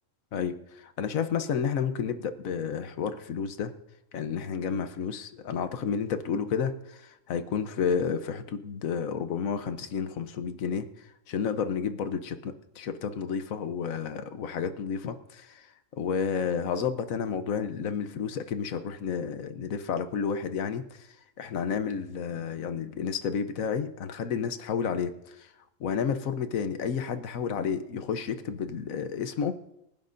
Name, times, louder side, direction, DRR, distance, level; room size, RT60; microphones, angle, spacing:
voice 1, 0.3-3.7 4.1-10.9 11.3-15.7 16.0-21.1 21.4-25.5 25.8-29.6, left 6 dB, 80° left, 9 dB, 1.3 m, -31 dB
25.0 x 11.0 x 2.6 m, 0.85 s
omnidirectional pair, 1.4 m